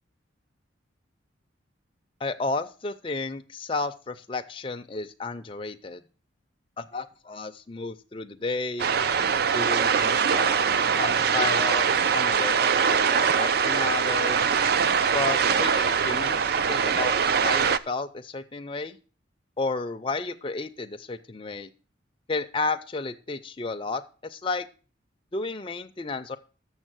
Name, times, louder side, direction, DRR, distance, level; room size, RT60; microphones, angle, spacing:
voice 1, 2.2-6.0 6.8-8.9 9.5-11.9 12.1-14.5 15.1-17.1 17.4-19.0 19.6-21.7 22.3-24.7 25.3-26.4, left 3 dB, 25° left, 6 dB, 0.5 m, -32 dB
sound 1, 8.8-17.8, right 6 dB, 55° right, 0.4 m, -23 dB
7.1 x 6.4 x 6.0 m, 0.37 s
head